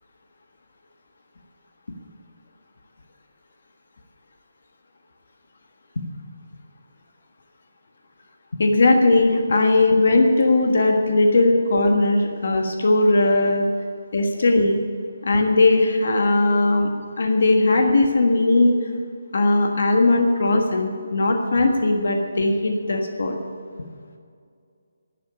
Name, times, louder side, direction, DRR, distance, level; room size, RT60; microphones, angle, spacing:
voice 1, 8.6-13.7 14.1-14.8 15.2-16.9 17.2-18.8 19.3-23.4, left 2 dB, 55° left, 3 dB, 1.5 m, -18 dB
12.0 x 9.5 x 8.6 m, 2.3 s
hypercardioid pair, 175°, 0 cm